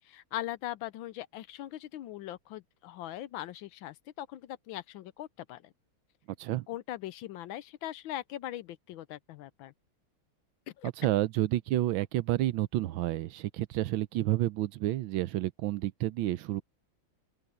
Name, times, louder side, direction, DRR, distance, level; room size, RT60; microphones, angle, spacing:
voice 1, 0.0-5.7 6.7-9.7 10.8-10.9, left 13 dB, 75° left, 1.3 m, -40 dB
voice 2, 11.0-16.6, right 15 dB, 75° right, 1.3 m, -30 dB
open air
omnidirectional pair, 2.3 m